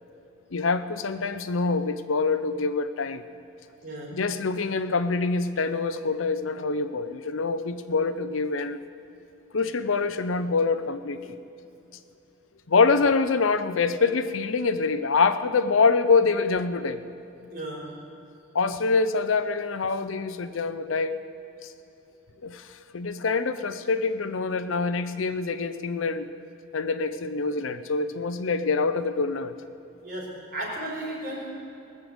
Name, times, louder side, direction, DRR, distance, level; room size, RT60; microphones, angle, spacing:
voice 1, 0.5-3.2 4.1-8.8 9.5-11.4 12.7-17.0 18.5-21.2 22.4-22.6 22.9-26.3 26.7-29.5, left 4 dB, 80° left, 11 dB, 0.7 m, -25 dB
voice 2, 3.8-4.2 17.5-18.0 30.0-31.5, right 1 dB, 50° right, -3 dB, 3.8 m, -35 dB
19.5 x 6.7 x 7.9 m, 2.9 s
head